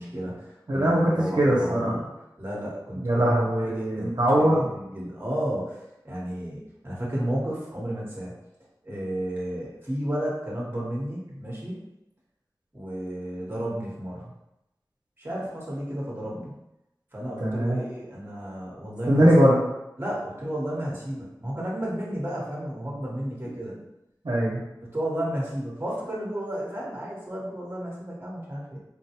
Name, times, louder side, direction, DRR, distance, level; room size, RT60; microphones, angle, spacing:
voice 1, 0.0-2.1 2.4-3.2 3.6-5.8 6.0-8.3 8.8-11.8 12.7-14.3 15.2-16.6 17.1-19.3 20.0-23.7 24.8-28.8, right 1 dB, 30° right, -5 dB, 1.0 m, -32 dB
voice 2, 0.7-2.0 3.0-4.7 17.4-17.8 19.1-19.6 24.2-24.6, equal, 80° right, -5 dB, 0.7 m, -21 dB
3.7 x 2.2 x 2.9 m, 0.90 s
wide cardioid pair, 60°, 7 cm